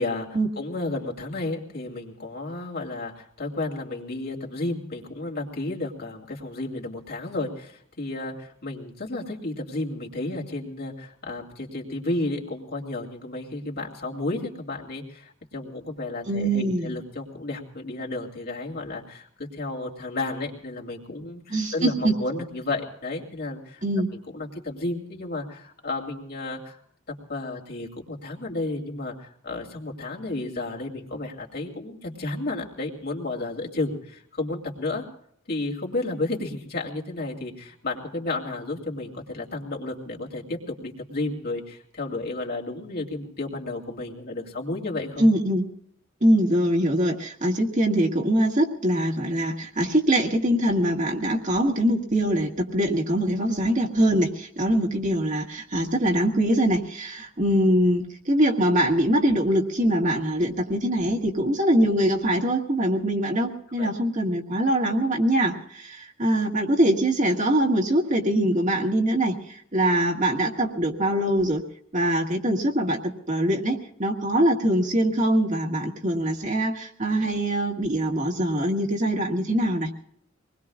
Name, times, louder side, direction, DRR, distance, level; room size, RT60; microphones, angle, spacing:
voice 1, 0.0-23.8 24.3-26.8 27.1-35.0 35.5-45.3 63.8-63.9, left 2 dB, 55° left, -1 dB, 2.9 m, -32 dB
voice 2, 16.3-16.9 21.5-22.1 23.8-24.1 45.2-45.7 46.2-71.6 71.9-79.9, right 1 dB, 40° right, 1 dB, 1.8 m, -23 dB
25.5 x 20.5 x 2.4 m, 0.66 s
head